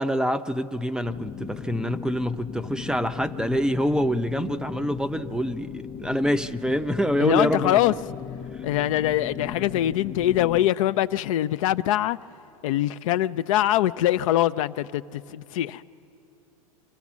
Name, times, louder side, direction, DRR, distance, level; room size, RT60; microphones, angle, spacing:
voice 1, 0.0-8.0, equal, 5° right, 10 dB, 0.5 m, -26 dB
sound 1, 1.0-10.7, left 7 dB, 25° left, 0.9 m, -37 dB
voice 2, 7.2-7.9 8.6-12.2 12.6-15.8, left 13 dB, 65° left, 13 dB, 0.4 m, -23 dB
25.5 x 16.0 x 7.3 m, 2.7 s
hypercardioid pair, 100°, 18 cm